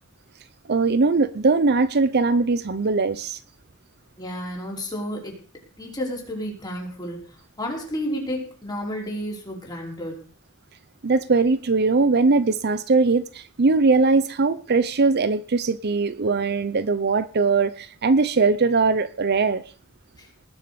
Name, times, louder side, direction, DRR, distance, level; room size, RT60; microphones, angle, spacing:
voice 1, 0.7-3.4 11.0-19.6, right 4 dB, 50° right, 14 dB, 0.6 m, -20 dB
voice 2, 4.2-5.4 5.8-10.3 20.2-20.3, equal, 20° left, -1 dB, 5.3 m, -31 dB
20.0 x 7.3 x 6.9 m, 0.43 s
head